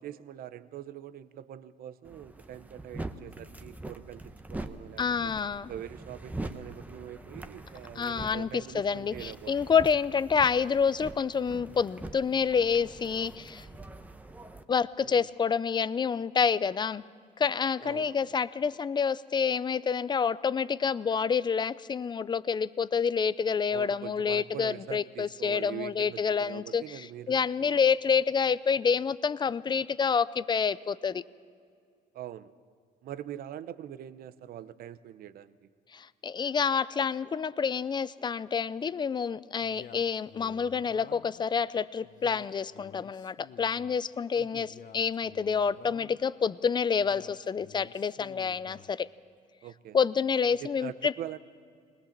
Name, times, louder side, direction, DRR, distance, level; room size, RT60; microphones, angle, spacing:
voice 1, 0.0-5.3 5.7-9.7 15.0-15.3 17.8-18.3 23.7-27.8 32.1-32.5 33.0-35.7 44.4-44.7 49.6-50.0 50.6-51.4, right 11 dB, 60° right, 13 dB, 0.8 m, -43 dB
sound 1, 2.0-14.6, right 2 dB, 10° right, 0.9 m, -43 dB
voice 2, 5.0-5.7 8.0-13.7 14.7-17.0 17.4-31.2 35.9-49.1 49.9-51.1, left 6 dB, 25° left, 17 dB, 0.5 m, -28 dB
Male speech man speaking, 39.6-41.4 42.0-44.0 44.6-46.3 47.0-48.9, left 9 dB, 50° left, 0.8 m, -51 dB
20.5 x 20.0 x 7.3 m, 2.3 s
cardioid pair, 110°, 17 cm